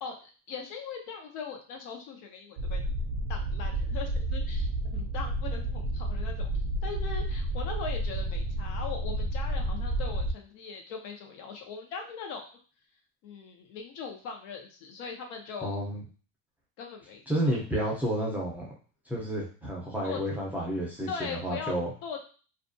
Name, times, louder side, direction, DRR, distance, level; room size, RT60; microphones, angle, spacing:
voice 1, 0.0-2.8 3.3-12.5 13.2-15.8 16.8-17.5 20.0-20.2 21.1-21.7 22.0-22.2, left 5 dB, 70° left, 3 dB, 0.7 m, -40 dB
sound 1, 2.6-10.3, right 1 dB, 60° right, 0.5 m, -31 dB
voice 2, 15.6-16.0 17.3-18.7 19.1-21.9, equal, 5° right, -4 dB, 0.5 m, -30 dB
2.4 x 2.3 x 2.5 m, 0.38 s
cardioid pair, 140°, 35 cm